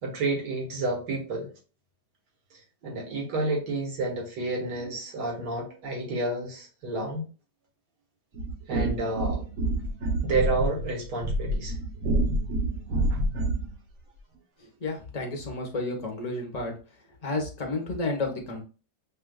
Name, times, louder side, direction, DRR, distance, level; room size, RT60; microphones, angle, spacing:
voice 1, 0.0-1.5 2.8-7.2 8.7-9.4 10.2-11.8 13.1-13.2, right 2 dB, 75° right, -1 dB, 2.0 m, -30 dB
sound 1, 8.3-13.7, right 1 dB, 55° right, 1.2 m, -28 dB
voice 2, 14.8-16.8 17.2-18.6, left 2 dB, 30° left, 2 dB, 0.9 m, -31 dB
6.6 x 2.5 x 2.2 m, 0.36 s
omnidirectional pair, 1.8 m